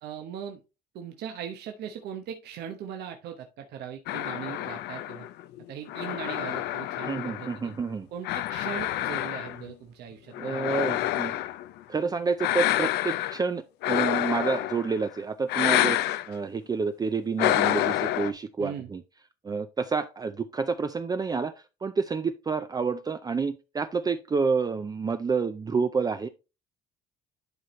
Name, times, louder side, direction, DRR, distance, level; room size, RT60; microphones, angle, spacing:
voice 1, 0.0-0.6 0.9-5.3 5.7-7.7 8.1-11.0 18.6-18.9, right 9 dB, 75° right, 1.0 m, -39 dB
sound 1, 4.1-7.8 8.2-9.7 10.3-11.7 12.4-13.4 13.8-15.0 15.5-16.3 17.4-18.3, left 14 dB, 80° left, 0.5 m, -28 dB
voice 2, 7.1-8.1 10.4-11.3 11.9-16.0 16.3-19.0 19.4-21.5 21.8-26.3, right 5 dB, 20° right, 0.5 m, -29 dB
11.0 x 4.3 x 3.1 m
cardioid pair, 110°, 17 cm